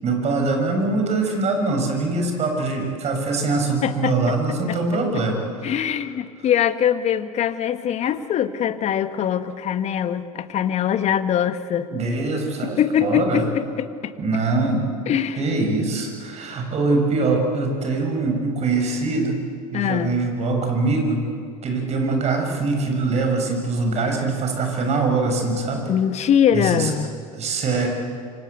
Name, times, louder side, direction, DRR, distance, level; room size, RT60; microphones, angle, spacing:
voice 1, 0.0-5.7 11.9-13.4 14.2-14.8 15.4-19.4 19.7-21.2 21.6-25.9 26.5-26.9 27.4-27.9, right 3 dB, 35° right, 3 dB, 7.2 m, -23 dB
voice 2, 3.8-4.3 4.7-4.8 5.6-11.9 12.6-14.1 15.1-15.4 19.7-20.1 25.9-27.2, left 9 dB, 35° left, 11 dB, 1.6 m, -22 dB
27.0 x 25.0 x 8.4 m, 2.4 s
figure-of-eight pair, 80°, 19 cm